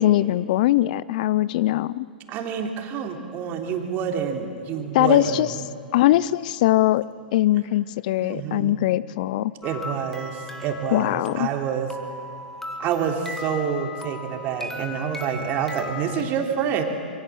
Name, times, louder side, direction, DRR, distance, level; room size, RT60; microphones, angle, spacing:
voice 1, 0.0-2.1 4.9-5.5 5.9-7.0 7.3-9.5 10.9-11.5, left 15 dB, 55° left, 20 dB, 0.5 m, -21 dB
voice 2, 2.3-5.7 8.2-8.8 9.6-11.9 12.8-16.8, right 7 dB, 35° right, 4 dB, 3.3 m, -27 dB
sound 1, 9.6-16.2, left 2 dB, 5° left, 2.5 m, -37 dB
26.5 x 23.5 x 7.6 m, 2.7 s
hypercardioid pair, 110°, 5 cm